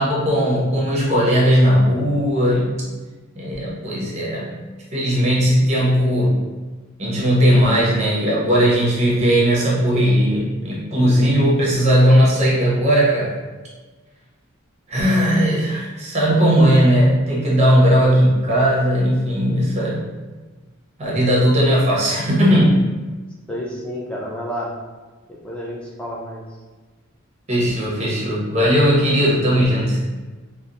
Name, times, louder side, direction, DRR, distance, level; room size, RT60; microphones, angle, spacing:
voice 1, 0.0-2.7 3.4-4.6 4.9-6.4 7.0-13.3 14.9-20.0 21.0-22.8 27.5-30.0, equal, 30° right, -6 dB, 0.7 m, -17 dB
voice 2, 23.5-24.7 25.3-26.4, equal, 5° left, -5 dB, 0.4 m, -30 dB
2.8 x 2.1 x 2.5 m, 1.3 s
head